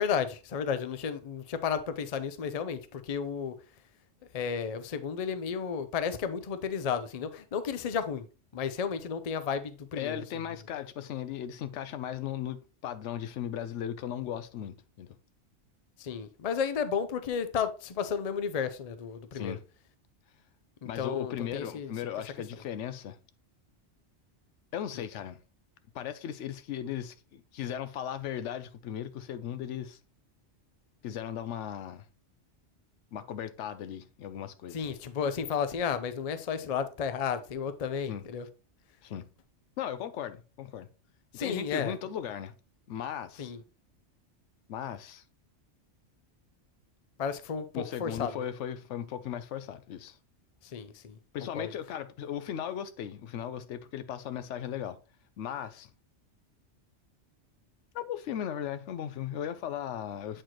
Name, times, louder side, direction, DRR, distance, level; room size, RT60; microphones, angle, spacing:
voice 1, 0.0-3.5 4.3-8.3 8.5-10.2 16.0-19.6 20.8-21.9 34.7-38.5 41.3-41.9 43.4-43.6 47.2-48.4 50.6-51.2 51.5-51.7, left 7 dB, 45° left, 0.5 m, -33 dB
voice 2, 9.9-15.2 19.3-19.6 20.8-23.2 24.7-25.4 25.9-30.0 31.0-32.1 33.1-34.9 38.1-38.2 39.0-39.3 39.8-40.9 41.3-42.5 42.9-43.5 44.7-45.2 47.7-50.2 51.3-55.0 55.4-55.9 57.9-60.4, left 9 dB, 80° left, 0.9 m, -37 dB
7.9 x 4.4 x 2.9 m
omnidirectional pair, 1.2 m